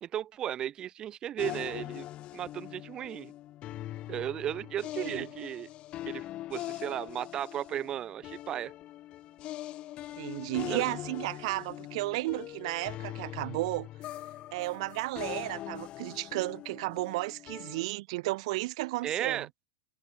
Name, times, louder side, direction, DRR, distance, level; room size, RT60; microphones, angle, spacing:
voice 1, 0.0-2.1 2.3-3.3 4.1-5.7 6.1-6.2 6.5-8.7 10.7-10.9 19.0-19.5, right 11 dB, 15° right, 0.4 m, -35 dB
sound 1, 1.4-17.9, left 14 dB, 20° left, 1.2 m, -42 dB
voice 2, 10.2-14.1 14.5-19.5, right 21 dB, 45° right, 1.0 m, -33 dB
supercardioid pair, 180°, 5 cm